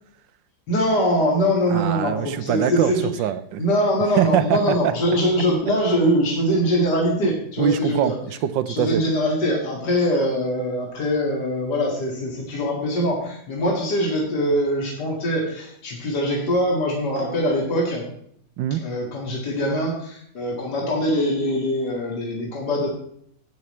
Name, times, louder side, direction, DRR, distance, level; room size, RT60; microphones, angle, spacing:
voice 1, 0.7-3.1 3.6-8.2 8.8-18.1 18.8-22.9, equal, 65° left, -3 dB, 2.7 m, -23 dB
voice 2, 1.7-3.6 4.2-4.9 7.6-9.0 18.6-18.8, right 10 dB, 90° right, 13 dB, 1.4 m, -23 dB
12.5 x 8.8 x 3.2 m, 0.68 s
omnidirectional pair, 1.9 m